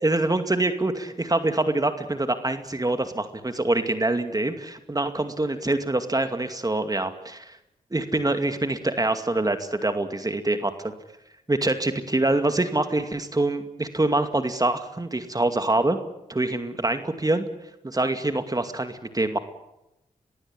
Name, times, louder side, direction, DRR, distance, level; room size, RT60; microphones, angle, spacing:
voice 1, 0.0-7.6 7.9-10.9 11.5-16.0 16.3-17.4 17.8-19.4, right 2 dB, 25° right, 8 dB, 2.3 m, -25 dB
22.5 x 15.5 x 9.9 m, 0.90 s
supercardioid pair, 40°, 14 cm